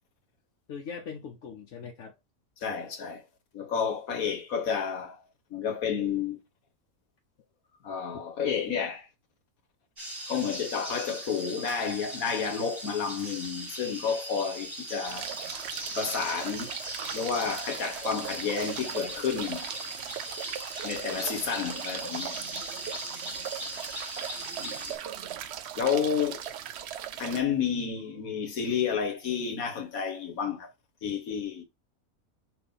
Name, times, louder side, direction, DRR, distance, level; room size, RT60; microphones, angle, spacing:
voice 1, 0.7-2.1, left 6 dB, 65° left, 1.1 m, -40 dB
voice 2, 2.6-3.2 3.5-5.2 5.5-6.4 7.8-9.1 10.3-15.3 16.0-16.8 17.1-19.7 20.8-22.4 24.6-25.0 25.8-26.5 27.2-30.7 31.0-31.6, left 7 dB, 85° left, 1.6 m, -30 dB
sound 1, 10.0-25.0, right 1 dB, 35° right, 2.3 m, -39 dB
sound 2, 15.0-27.4, right 10 dB, 65° right, 0.7 m, -39 dB
6.1 x 2.8 x 5.4 m
omnidirectional pair, 1.5 m